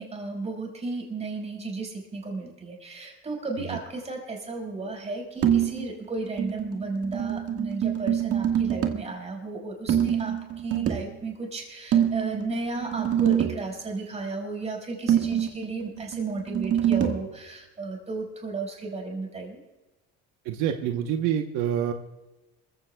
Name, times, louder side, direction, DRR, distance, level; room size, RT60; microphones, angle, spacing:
voice 1, 0.0-19.6, right 3 dB, 20° right, 0 dB, 5.2 m, -34 dB
sound 1, 5.4-5.9 6.2-9.1 9.9-11.1 11.9-13.7 15.1-17.3, right 10 dB, 50° right, 1.6 m, -25 dB
voice 2, 20.4-21.9, right 9 dB, 75° right, 5 dB, 1.1 m, -26 dB
27.0 x 15.5 x 2.3 m, 1.1 s
cardioid pair, 120°, 30 cm